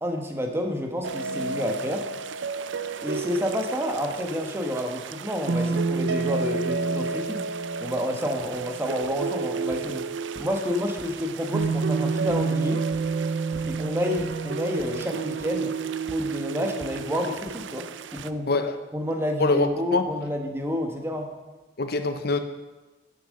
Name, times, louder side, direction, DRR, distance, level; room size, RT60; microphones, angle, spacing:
voice 1, 0.0-2.0 3.0-7.4 7.8-10.1 10.4-12.8 13.7-15.7 16.1-17.9 18.1-18.5 18.9-21.3, left 1 dB, 15° right, 3 dB, 1.2 m, -29 dB
sound 1, 1.0-18.3, right 4 dB, 80° right, 0.5 m, -30 dB
sound 2, 8.4-8.6 9.0-9.3 9.7-10.0 10.3-11.2 11.6-11.9 12.3-12.5 12.9-13.1 13.5-13.8 14.2-14.4 14.8-15.1 15.4-15.7 16.1-16.3 16.8-17.1 17.5-17.7 18.2-18.3, equal, 20° left, 1.3 m, -45 dB
voice 2, 18.5-18.8 19.4-20.1 21.8-22.4, left 3 dB, 55° left, 9 dB, 0.7 m, -24 dB
10.0 x 6.5 x 6.5 m, 1.2 s
head